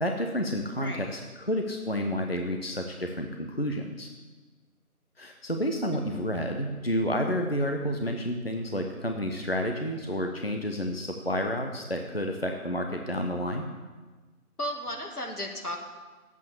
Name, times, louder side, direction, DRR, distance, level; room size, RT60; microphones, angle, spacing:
voice 1, 0.0-4.1 5.2-13.7, equal, 45° left, 3 dB, 0.8 m, -30 dB
voice 2, 0.8-1.1 5.9-6.0 14.6-15.8, equal, 90° left, 2 dB, 2.5 m, -34 dB
9.8 x 8.3 x 7.0 m, 1.3 s
figure-of-eight pair, 180°, 44 cm